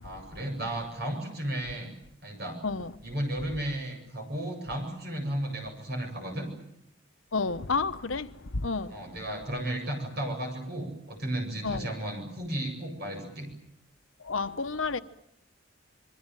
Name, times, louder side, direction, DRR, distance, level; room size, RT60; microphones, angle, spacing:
voice 1, 0.0-1.9 2.2-2.6 3.0-6.5 8.9-13.5, right 1 dB, 50° right, 8.0 m, -34 dB
voice 2, 7.3-8.2 8.6-8.9 11.6-11.9 14.3-15.0, left 4 dB, 85° left, 1.1 m, -30 dB
26.0 x 22.5 x 9.2 m
head